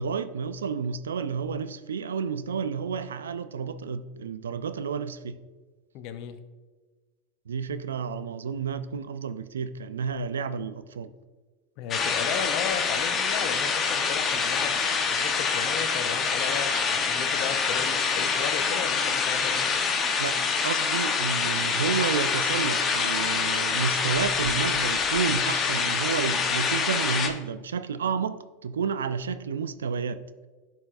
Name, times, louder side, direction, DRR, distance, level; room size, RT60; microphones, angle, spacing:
voice 1, 0.0-5.4 7.5-11.1 20.2-20.4 20.6-30.2, right 6 dB, 90° right, 0.3 m, -31 dB
voice 2, 5.9-6.4 11.8-14.7 15.1-19.7, left 8 dB, 60° left, 0.7 m, -35 dB
sound 1, 11.9-27.3, left 5 dB, 35° left, 0.9 m, -26 dB
10.5 x 4.6 x 2.6 m
hypercardioid pair, 95°, 0 cm